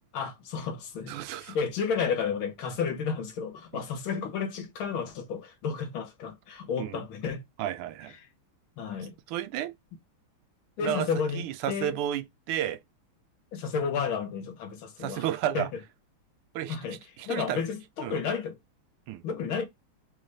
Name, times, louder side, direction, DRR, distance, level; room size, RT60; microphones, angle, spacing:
voice 1, 0.1-7.4 8.8-9.1 10.8-12.0 13.5-15.2 15.5-15.7 16.7-17.0 17.2-18.6 19.2-19.7, left 6 dB, 70° left, 1.7 m, -32 dB
voice 2, 1.1-1.6 3.7-3.8 6.8-7.0 7.6-8.1 9.3-9.7 10.8-11.1 11.3-12.8 15.0-15.7 16.5-17.6 18.0-18.1 19.1-19.2, right 11 dB, 80° right, 1.4 m, -32 dB
4.0 x 3.3 x 3.9 m
omnidirectional pair, 2.4 m